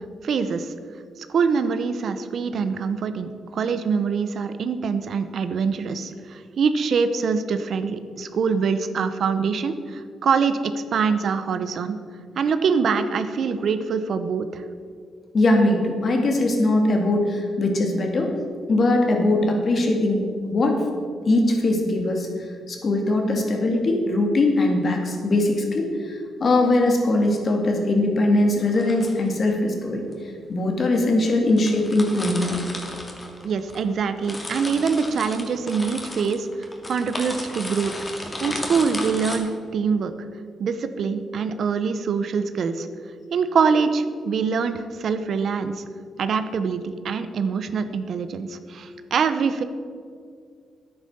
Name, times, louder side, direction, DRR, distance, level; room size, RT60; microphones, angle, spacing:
voice 1, 0.2-0.7 1.2-12.0 12.4-14.6 33.4-36.5 36.9-37.9 38.4-40.1 40.6-42.9 43.3-45.8 46.2-49.6, right 5 dB, 65° right, 10 dB, 0.8 m, -24 dB
voice 2, 15.3-18.3 18.7-20.8 21.2-30.0 30.5-32.6, left 2 dB, 45° left, 2 dB, 2.3 m, -21 dB
sound 1, 26.5-26.8 28.6-29.3 30.1-30.2 31.0-31.1 31.3-31.4 31.6-33.8 34.1-39.4, left 1 dB, 20° left, 2.2 m, -34 dB
10.0 x 9.1 x 6.8 m, 2.1 s
cardioid pair, 90°, 0 cm